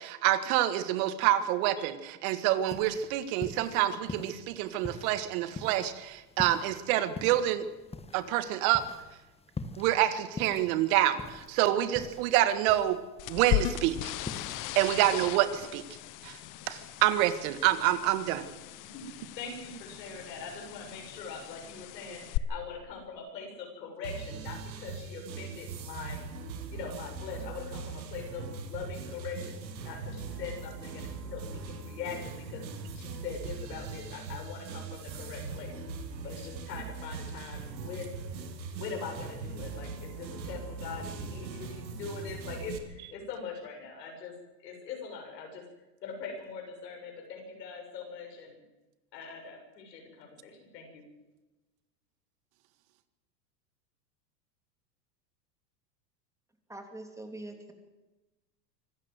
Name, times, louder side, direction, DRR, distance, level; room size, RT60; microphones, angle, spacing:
voice 1, 0.0-7.7 8.1-8.8 9.8-13.0 13.3-14.1 14.8-15.8 16.2-16.4 16.7-18.5, right 13 dB, 55° right, 12 dB, 1.8 m, -27 dB
sound 1, 2.6-15.1, left 3 dB, 10° left, 1.5 m, -45 dB
sound 2, 13.2-22.4, left 15 dB, 40° left, 1.1 m, -37 dB
voice 2, 18.9-26.2 26.7-32.6 32.9-35.7 36.2-38.2 38.7-44.3 44.6-45.6 46.0-48.6 49.1-51.0, left 5 dB, 75° left, 2 dB, 7.7 m, -42 dB
sound 3, 24.0-42.8, right 4 dB, 85° right, 2.8 m, -40 dB
voice 3, 56.7-57.7, right 2 dB, 5° right, 4 dB, 3.1 m, -43 dB
25.0 x 13.0 x 8.0 m, 1.1 s
hypercardioid pair, 105°, 50 cm